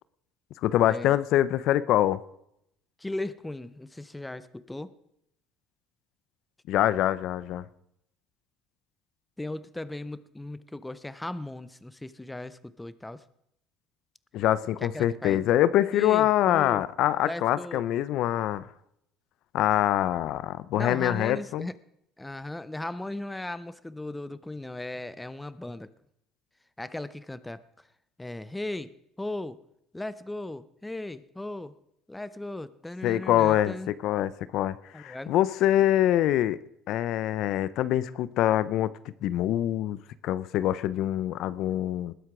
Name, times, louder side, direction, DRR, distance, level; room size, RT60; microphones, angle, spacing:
voice 1, 0.6-2.2 6.7-7.6 14.3-18.7 19.5-21.7 33.0-36.6 36.9-38.9 39.2-42.1, left 13 dB, 65° left, 18 dB, 0.6 m, -25 dB
voice 2, 3.0-4.9 9.4-13.2 14.8-15.4 15.9-16.9 17.2-17.8 20.7-21.8 22.2-25.9 26.8-27.6 28.2-28.9 29.2-29.6 29.9-31.7 32.1-33.9 34.9-35.3, left 2 dB, 10° left, 16 dB, 0.7 m, -37 dB
20.0 x 8.1 x 6.1 m, 0.76 s
cardioid pair, 115°, 0 cm